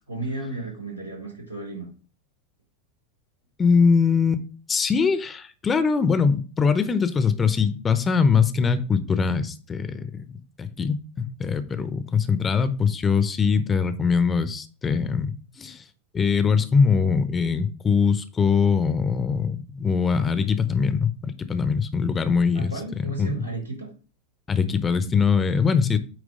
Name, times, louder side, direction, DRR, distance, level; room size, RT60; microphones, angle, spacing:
voice 1, 0.1-1.9 22.5-23.9, right 3 dB, 90° right, -3 dB, 4.1 m, -33 dB
voice 2, 3.6-4.4 4.7-10.3 10.6-15.8 16.1-23.4 24.5-26.0, left 5 dB, 20° left, 12 dB, 0.7 m, -22 dB
8.9 x 3.2 x 5.2 m, 0.36 s
figure-of-eight pair, 90°, 0 cm